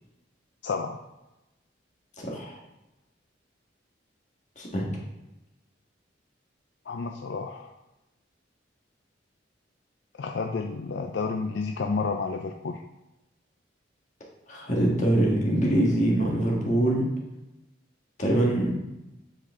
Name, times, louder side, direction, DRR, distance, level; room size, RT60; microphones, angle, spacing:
voice 1, 0.6-1.0 6.9-7.7 10.2-12.8, left 4 dB, 65° left, 4 dB, 0.4 m, -30 dB
voice 2, 2.2-2.6 4.6-4.9 14.5-17.1 18.2-18.7, right 1 dB, 40° left, -2 dB, 1.4 m, -24 dB
7.5 x 4.3 x 3.5 m, 0.97 s
head